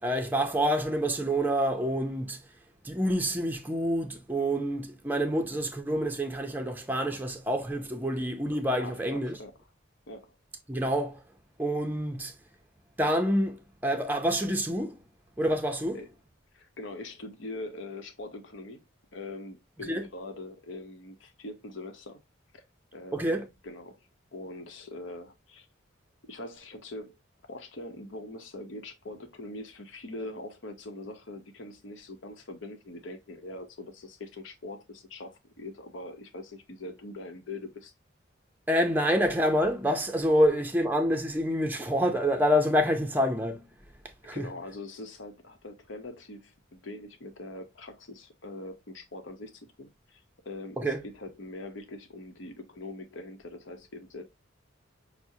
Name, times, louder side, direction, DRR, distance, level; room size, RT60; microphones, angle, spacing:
voice 1, 0.0-2.4 2.8-9.4 10.7-11.2 11.6-12.3 13.0-15.0 15.4-16.0 19.8-20.0 23.1-23.5 38.7-43.7 44.2-44.5 50.8-51.0, equal, 10° right, 0.5 m, -27 dB
voice 2, 8.8-9.6 10.1-10.3 15.9-16.1 16.5-18.9 19.1-22.2 22.5-22.6 22.9-23.4 23.6-24.0 24.3-25.7 26.3-27.2 27.5-37.9 44.3-54.2, left 2 dB, 75° left, 0.8 m, -42 dB
6.0 x 2.1 x 2.7 m
head